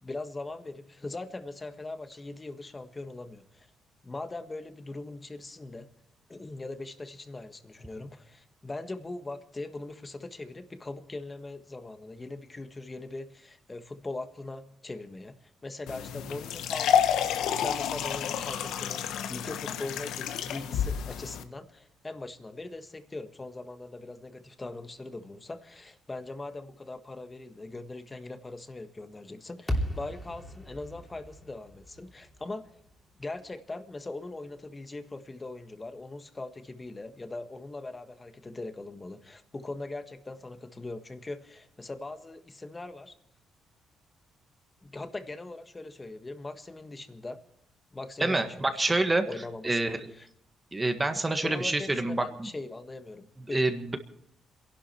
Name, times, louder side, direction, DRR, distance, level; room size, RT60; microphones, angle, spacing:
voice 1, 0.0-3.7 4.0-5.9 6.3-32.8 33.2-43.1 44.8-47.4 47.9-49.0 49.3-50.3 51.4-53.6, left 2 dB, 20° left, 8 dB, 1.5 m, -41 dB
sound 1, 15.9-21.4, left 9 dB, 85° left, 1.0 m, -29 dB
sound 2, 29.7-34.0, equal, 5° left, 3.0 m, -37 dB
voice 2, 48.2-49.2 49.6-50.1 50.7-52.5 53.5-54.0, right 2 dB, 20° right, 7 dB, 1.6 m, -27 dB
27.5 x 11.5 x 4.5 m, 0.72 s
cardioid pair, 90°, 0 cm